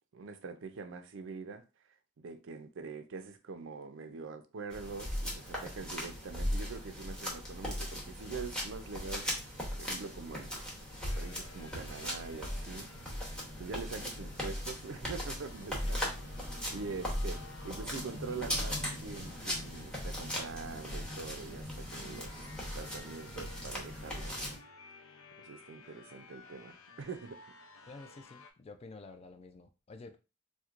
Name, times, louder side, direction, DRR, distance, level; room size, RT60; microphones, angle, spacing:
voice 1, 0.1-1.6 2.2-9.3 9.7-10.6 11.1-12.9 13.6-16.1 16.7-22.4 22.7-24.6 25.4-27.4 27.8-27.9, right 4 dB, 65° right, 0.4 m, -44 dB
sound 1, 4.7-24.6, equal, 5° left, 0.8 m, -38 dB
sound 2, 11.1-28.5, left 3 dB, 85° left, 0.5 m, -55 dB
voice 2, 15.8-16.2 16.6-16.8 27.9-30.2, left 3 dB, 30° left, 0.3 m, -50 dB
4.4 x 2.1 x 2.4 m
head